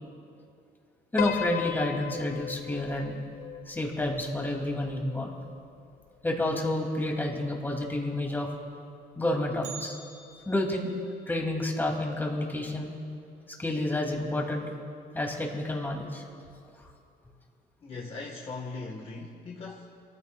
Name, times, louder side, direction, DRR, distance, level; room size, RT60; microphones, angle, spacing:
voice 1, 1.1-3.2 3.7-5.3 6.2-8.5 9.2-10.0 10.5-10.9 11.3-12.9 13.6-14.6 15.1-16.2 16.8-16.9, left 1 dB, 10° left, 0 dB, 2.6 m, -29 dB
Piano, 1.2-5.6, left 11 dB, 65° left, 0.6 m, -37 dB
Bell, 9.6-13.7 14.0-14.1 14.6-14.7 15.5-15.6 16.3-16.6 17.0-17.1, right 6 dB, 45° right, 2.4 m, -50 dB
voice 2, 17.8-20.0, left 3 dB, 35° left, 0 dB, 1.4 m, -40 dB
27.5 x 15.0 x 2.4 m, 2.4 s
cardioid pair, 110°, 17 cm